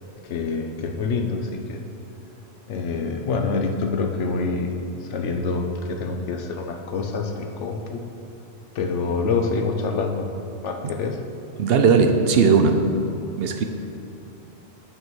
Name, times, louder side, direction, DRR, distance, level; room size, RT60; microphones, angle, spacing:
voice 1, 0.3-1.8 2.7-4.8 5.1-8.0 8.8-10.3 10.6-11.2, left 4 dB, 85° left, 4 dB, 1.1 m, -26 dB
voice 2, 11.6-12.9 13.4-13.6, right 5 dB, 65° right, 6 dB, 0.8 m, -18 dB
9.5 x 3.8 x 6.2 m, 2.9 s
omnidirectional pair, 1.2 m